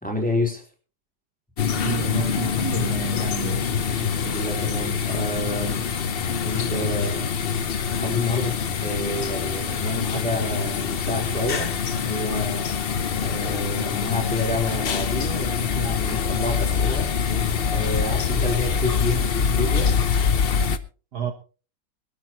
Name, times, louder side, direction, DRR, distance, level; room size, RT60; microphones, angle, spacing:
voice 1, 0.0-0.7 3.9-5.9 6.4-7.3 8.0-12.6 13.2-17.1 17.7-19.9, left 2 dB, 5° left, 3.7 m, -29 dB
sound 1, 1.6-20.8, left 6 dB, 65° left, 0.5 m, -25 dB
voice 2, 1.7-3.6 21.1-21.3, right 7 dB, 60° right, 1.6 m, -30 dB
23.0 x 12.5 x 2.9 m
omnidirectional pair, 2.1 m